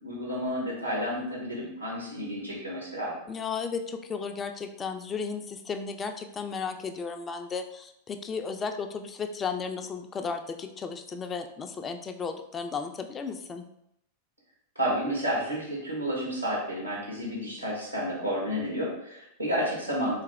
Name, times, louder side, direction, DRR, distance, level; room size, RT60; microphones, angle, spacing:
voice 1, 0.0-3.1 14.7-20.2, equal, 85° right, -4 dB, 1.4 m, -31 dB
voice 2, 3.3-13.6, left 5 dB, 20° left, 7 dB, 0.3 m, -34 dB
3.4 x 3.2 x 3.4 m, 0.77 s
figure-of-eight pair, 90°, 0 cm